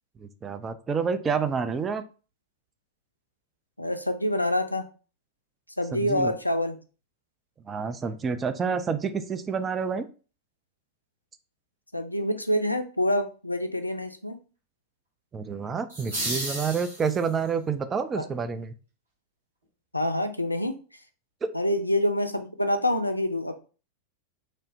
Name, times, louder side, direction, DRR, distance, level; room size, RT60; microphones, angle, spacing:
voice 1, 0.2-2.0 5.9-6.3 7.7-10.1 15.3-18.7 21.4-21.5, right 5 dB, 20° right, 9 dB, 0.3 m, -28 dB
voice 2, 3.8-4.8 5.8-6.8 11.9-14.4 18.2-18.3 19.9-20.8 21.5-23.5, left 1 dB, 85° left, 7 dB, 0.3 m, -26 dB
sound 1, 15.9-17.5, right 1 dB, 70° right, 1.1 m, -33 dB
3.0 x 2.1 x 2.6 m, 0.35 s
figure-of-eight pair, 90°, 0 cm